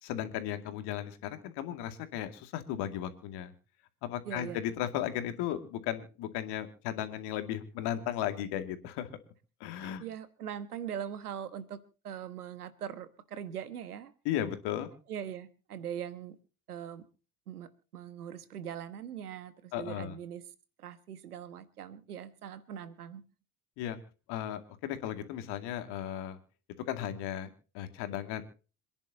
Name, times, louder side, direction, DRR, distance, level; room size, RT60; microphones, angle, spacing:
voice 1, 0.0-3.5 4.0-9.1 9.6-10.0 14.2-14.9 19.7-20.1 23.8-24.0 24.3-26.4 26.9-27.5 27.7-28.4, left 11 dB, 60° left, 8 dB, 2.4 m, -35 dB
voice 2, 4.2-4.6 9.7-14.1 15.1-16.4 16.7-17.1 17.5-20.5 20.8-23.2, right 9 dB, 85° right, 14 dB, 1.3 m, -41 dB
27.0 x 10.5 x 2.8 m, 0.34 s
hypercardioid pair, 65°, 44 cm